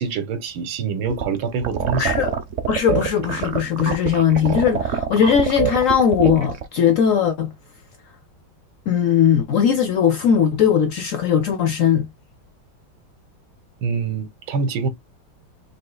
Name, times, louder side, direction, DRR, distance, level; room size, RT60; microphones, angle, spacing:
voice 1, 0.0-2.1 13.8-14.9, right 5 dB, 80° right, 1.8 m, -25 dB
sound 1, 1.1-6.6, right 7 dB, 55° right, 0.9 m, -25 dB
voice 2, 2.0-2.3 2.7-7.5 8.9-12.1, left 8 dB, 75° left, 0.7 m, -19 dB
5.3 x 3.7 x 2.2 m
omnidirectional pair, 2.2 m